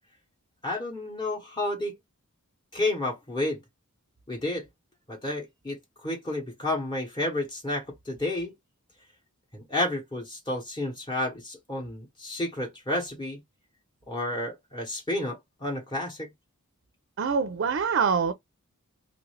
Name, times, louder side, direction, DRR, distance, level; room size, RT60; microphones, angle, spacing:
voice 1, 0.6-1.9 2.7-3.6 4.3-4.7 5.1-5.8 6.0-8.5 9.5-13.4 14.1-16.3, left 1 dB, 20° left, 0.9 m, -31 dB
voice 2, 17.2-18.3, right 6 dB, 50° right, 0.4 m, -25 dB
3.1 x 2.4 x 3.2 m
head